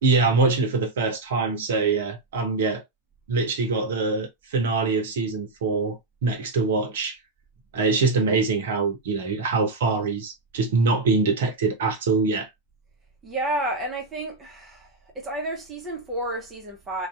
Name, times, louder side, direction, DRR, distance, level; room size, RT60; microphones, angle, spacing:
voice 1, 0.0-2.8 3.3-7.2 7.7-12.5, right 4 dB, 60° right, 0.8 m, -24 dB
voice 2, 13.2-14.9 15.1-17.1, right 1 dB, 20° right, 0.9 m, -30 dB
2.6 x 2.3 x 2.3 m
figure-of-eight pair, 90°, 0 cm